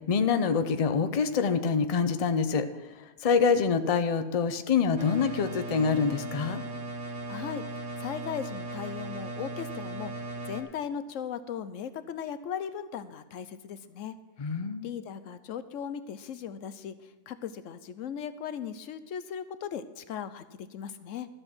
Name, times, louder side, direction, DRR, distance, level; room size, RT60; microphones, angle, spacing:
voice 1, 0.1-2.7 3.2-6.6 14.4-14.9, left 5 dB, 40° left, 9 dB, 0.6 m, -25 dB
sound 1, 5.0-10.6, right 2 dB, 75° right, 1.6 m, -38 dB
voice 2, 7.3-7.6 8.0-10.1 10.5-14.1 14.8-16.9 17.3-21.3, left 8 dB, 90° left, 12 dB, 1.1 m, -37 dB
13.0 x 7.8 x 6.1 m, 1.1 s
omnidirectional pair, 1.3 m